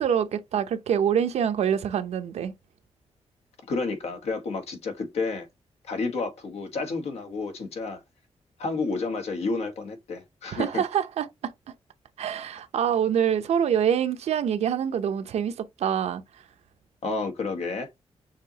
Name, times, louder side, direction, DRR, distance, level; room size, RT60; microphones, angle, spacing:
voice 1, 0.0-2.5 10.5-11.5 12.2-16.2, right 8 dB, 80° right, 0.7 m, -25 dB
voice 2, 3.7-5.5 5.8-8.0 8.6-10.9 17.0-17.9, left 3 dB, 75° left, 1.2 m, -30 dB
6.6 x 2.8 x 2.8 m
wide cardioid pair, 155°, 11 cm